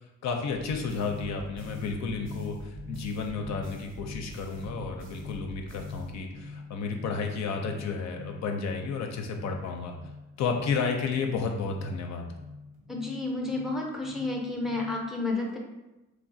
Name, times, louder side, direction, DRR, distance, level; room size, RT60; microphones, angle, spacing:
voice 1, 0.2-9.9 10.4-12.3, left 4 dB, 65° left, 3 dB, 0.4 m, -32 dB
sound 1, 0.5-6.6, right 2 dB, 45° right, 0.6 m, -47 dB
sound 2, 1.1-15.0, left 3 dB, 80° right, 0.7 m, -45 dB
voice 2, 12.9-15.6, left 2 dB, ahead, 0 dB, 0.5 m, -31 dB
3.2 x 2.3 x 2.6 m, 1.0 s
cardioid pair, 90°, 30 cm